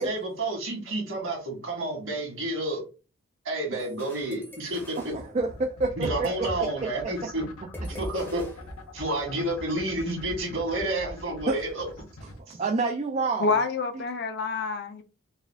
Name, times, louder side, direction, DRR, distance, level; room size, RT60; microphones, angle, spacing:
voice 1, 0.0-2.8 3.5-5.1 6.0-7.4 7.9-8.5 8.9-11.9 12.5-12.6, right 1 dB, 60° right, 1.8 m, -30 dB
sound 1, 3.8-6.6 6.9-7.1 7.7-9.3, equal, 10° left, 0.7 m, -41 dB
sound 2, 4.2-12.4, left 2 dB, 85° left, 0.8 m, -44 dB
voice 2, 5.0-6.9 7.9-8.0 11.5-11.6 12.2-13.5 14.0-14.1, right 3 dB, 30° right, 0.3 m, -29 dB
voice 3, 13.4-15.0, left 4 dB, 50° left, 0.6 m, -27 dB
4.1 x 2.4 x 3.5 m
head